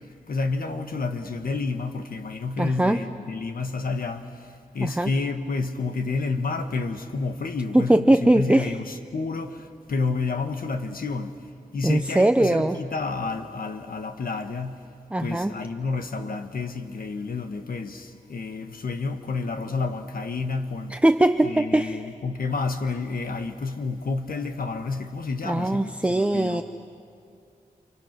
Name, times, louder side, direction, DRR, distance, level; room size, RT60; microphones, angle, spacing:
voice 1, 0.3-11.4 11.7-14.8 15.2-20.9 21.4-26.6, left 4 dB, 90° left, 1.6 m, -30 dB
voice 2, 2.6-3.0 4.8-5.1 7.7-8.8 11.8-12.8 15.1-15.5 20.9-22.0 25.4-26.6, right 1 dB, 10° right, 0.6 m, -21 dB
29.5 x 28.5 x 6.1 m
wide cardioid pair, 115°, 14 cm